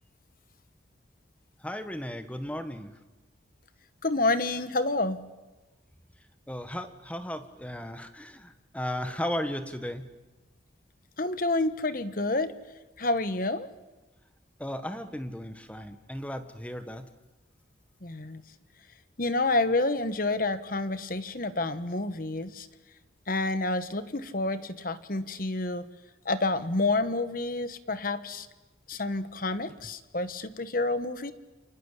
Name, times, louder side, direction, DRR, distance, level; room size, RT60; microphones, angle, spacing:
voice 1, 1.6-2.9 6.5-10.1 14.6-17.1, left 1 dB, 5° left, 9 dB, 1.3 m, -35 dB
voice 2, 4.0-5.2 11.2-12.5 13.0-13.7 18.0-18.4 19.2-22.7 23.3-25.9 26.2-28.5 28.9-31.3, left 2 dB, 50° left, 12 dB, 1.3 m, -29 dB
29.0 x 24.0 x 8.3 m, 1.2 s
head